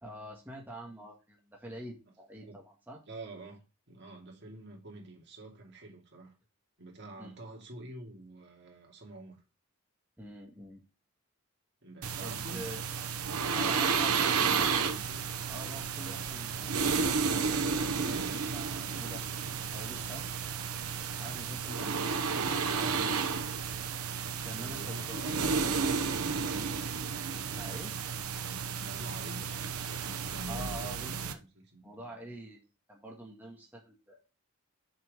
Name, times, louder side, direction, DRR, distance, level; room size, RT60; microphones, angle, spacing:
voice 1, 0.0-3.0 7.2-7.3 10.2-10.8 12.2-12.8 13.5-14.7 15.5-19.2 19.7-20.5 21.2-21.9 24.4-25.2 27.5-28.0 30.5-31.4 31.8-34.4, right 1 dB, 10° right, 1.8 m, -46 dB
voice 2, 3.1-3.6 3.9-6.3 6.8-9.4 11.8-12.7 13.8-15.2 16.0-16.2 22.7-23.2 24.6-26.7 28.7-30.9 31.4-32.2, right 2 dB, 55° right, 2.7 m, -47 dB
sound 1, 12.0-31.3, right 5 dB, 90° right, 0.9 m, -32 dB
6.5 x 6.0 x 5.2 m
head